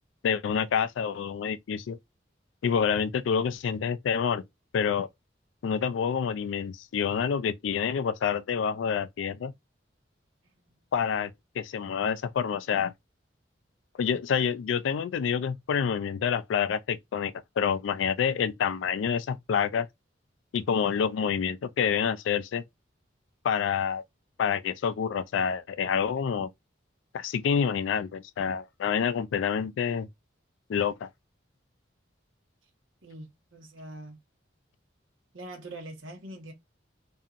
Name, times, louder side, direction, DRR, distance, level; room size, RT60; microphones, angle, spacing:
voice 1, 0.2-2.0 2.6-4.4 4.7-5.1 5.6-9.5 10.9-11.3 11.6-12.9 14.0-19.9 20.5-22.6 23.4-24.0 24.4-26.5 27.1-30.1 30.7-31.1, left 7 dB, 80° left, 0.3 m, -27 dB
voice 2, 10.4-10.8 33.0-34.2 35.3-36.5, right 1 dB, 90° right, 1.2 m, -44 dB
2.7 x 2.6 x 2.4 m
head